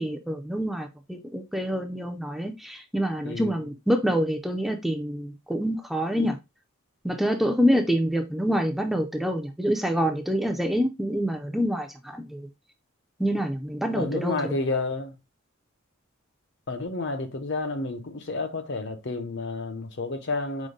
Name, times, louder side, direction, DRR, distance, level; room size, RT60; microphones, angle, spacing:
voice 1, 0.0-6.4 7.0-12.5 13.2-14.6, equal, ahead, 0.4 m, -26 dB
voice 2, 3.2-3.7 13.9-15.2 16.7-20.7, left 3 dB, 55° left, 0.8 m, -30 dB
5.0 x 2.1 x 3.9 m
head